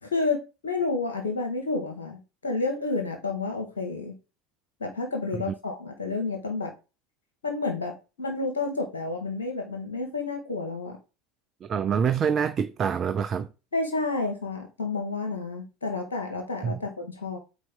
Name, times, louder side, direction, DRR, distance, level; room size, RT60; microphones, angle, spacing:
voice 1, 0.0-4.1 4.8-6.7 7.4-11.0 13.7-17.4, left 3 dB, 90° left, 2.0 m, -30 dB
voice 2, 11.6-13.5 16.6-16.8, right 7 dB, 35° right, 0.5 m, -26 dB
4.6 x 4.1 x 5.4 m
hypercardioid pair, 80°, 0 cm